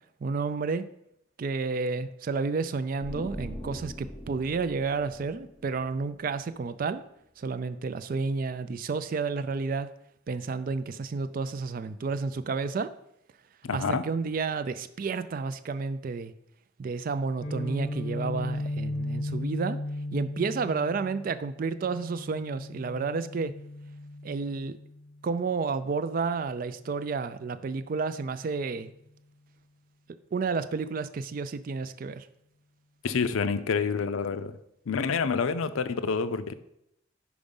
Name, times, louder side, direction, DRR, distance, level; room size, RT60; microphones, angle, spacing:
voice 1, 0.2-0.8 1.4-7.0 7.4-9.9 10.3-12.9 13.7-16.3 16.8-19.8 20.1-23.5 24.2-24.8 25.2-28.9 30.3-32.3, right 4 dB, 45° right, 13 dB, 0.3 m, -31 dB
sound 1, 3.0-6.6, equal, 5° left, 0.6 m, -42 dB
voice 2, 13.6-14.0 33.0-34.5 34.9-36.5, left 5 dB, 90° left, 12 dB, 0.5 m, -28 dB
Guitar, 17.4-25.3, left 1 dB, 65° left, 1.4 m, -36 dB
5.2 x 4.8 x 5.3 m, 0.78 s
head